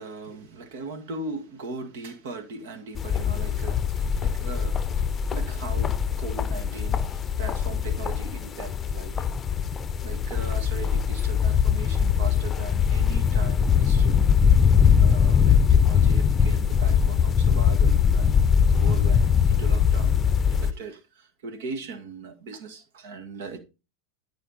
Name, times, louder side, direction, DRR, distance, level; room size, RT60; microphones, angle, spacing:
voice 1, 0.0-9.2 9.4-9.7 10.0-14.2 15.0-20.2 20.4-23.6, right 3 dB, 70° right, 1.9 m, -39 dB
sound 1, 2.9-20.7, left 7 dB, 25° left, 0.6 m, -21 dB
12.5 x 5.1 x 4.0 m
hypercardioid pair, 110°, 0 cm